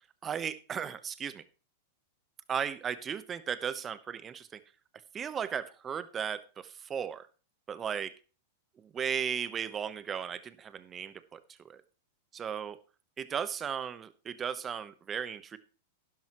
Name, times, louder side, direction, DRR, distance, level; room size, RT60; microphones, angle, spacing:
voice 1, 0.2-1.4 2.5-4.6 5.1-7.3 7.7-8.1 8.8-11.4 11.6-11.8 12.3-12.8 13.2-15.6, right 7 dB, 25° right, 14 dB, 1.0 m, -36 dB
11.5 x 11.0 x 3.0 m, 0.34 s
hypercardioid pair, 105°, 0 cm